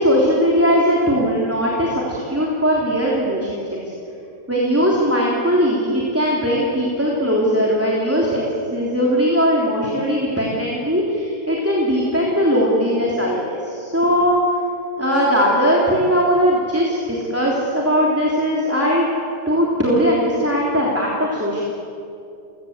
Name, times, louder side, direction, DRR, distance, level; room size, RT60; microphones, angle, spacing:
voice 1, 0.0-3.6 4.5-8.4 8.7-14.4 15.0-19.1 19.5-21.6, equal, 5° right, -4 dB, 3.3 m, -19 dB
30.0 x 16.5 x 8.1 m, 2.7 s
omnidirectional pair, 1.9 m